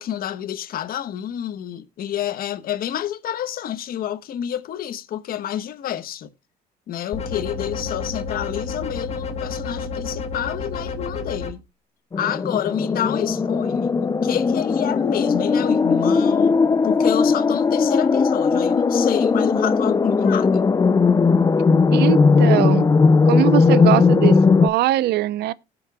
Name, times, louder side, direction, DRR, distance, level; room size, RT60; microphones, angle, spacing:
voice 1, 0.0-6.3 6.9-11.6 12.2-16.6 16.8-20.6, left 10 dB, 60° left, 1.2 m, -28 dB
sound 1, 7.1-11.5, left 4 dB, 40° left, 2.0 m, -30 dB
sound 2, 12.1-24.7, left 4 dB, 20° left, 0.5 m, -18 dB
voice 2, 21.9-22.9 23.3-25.5, right 14 dB, 75° right, 0.7 m, -21 dB
19.5 x 7.7 x 2.3 m
cardioid pair, 110°, 17 cm